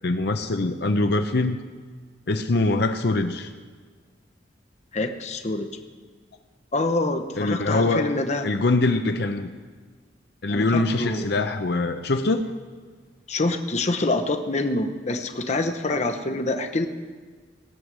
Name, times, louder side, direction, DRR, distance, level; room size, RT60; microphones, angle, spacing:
voice 1, 0.0-1.6 2.3-3.5 7.4-8.1 8.4-9.5 10.4-12.4, left 2 dB, 65° left, 7 dB, 0.7 m, -23 dB
voice 2, 4.9-5.7 6.7-8.5 10.5-11.3 13.3-16.9, left 2 dB, 40° left, 6 dB, 0.9 m, -26 dB
18.0 x 8.1 x 6.2 m, 1.5 s
head